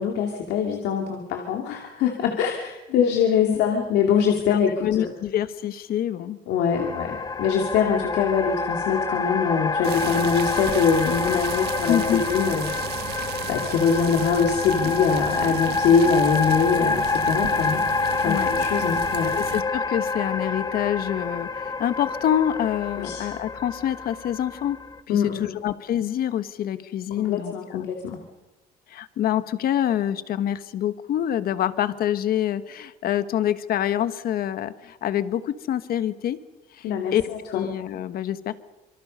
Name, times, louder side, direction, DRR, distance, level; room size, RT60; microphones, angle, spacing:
voice 1, 0.0-5.1 6.5-12.7 13.0-13.2 13.5-17.9 18.2-19.3 23.0-23.2 25.1-25.6 27.2-28.2 36.8-37.7, left 6 dB, 85° left, 2 dB, 2.7 m, -23 dB
voice 2, 4.5-6.4 6.8-6.9 11.9-12.2 18.2-18.5 19.3-24.8 25.1-27.9 28.9-36.4 36.8-37.2 37.5-38.5, left 11 dB, 65° left, 12 dB, 1.3 m, -26 dB
sound 1, 6.8-25.0, left 4 dB, 20° left, 1.0 m, -27 dB
sound 2, 9.8-19.6, right 11 dB, 75° right, 1.6 m, -35 dB
26.5 x 24.0 x 5.5 m, 1.1 s
cardioid pair, 110°, 17 cm